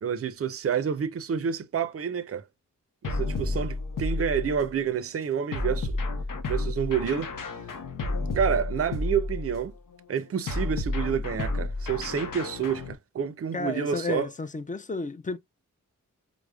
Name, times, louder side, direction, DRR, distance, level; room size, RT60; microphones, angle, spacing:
voice 1, 0.0-2.4 3.0-5.9 6.5-7.3 8.3-9.7 10.1-14.3, right 7 dB, 45° right, 0.5 m, -29 dB
sound 1, 3.0-4.8 5.5-9.7 10.5-12.9, left 2 dB, 85° left, 0.7 m, -31 dB
voice 2, 13.5-15.4, left 3 dB, 25° left, 0.4 m, -32 dB
4.8 x 2.0 x 2.2 m
wide cardioid pair, 90°, 32 cm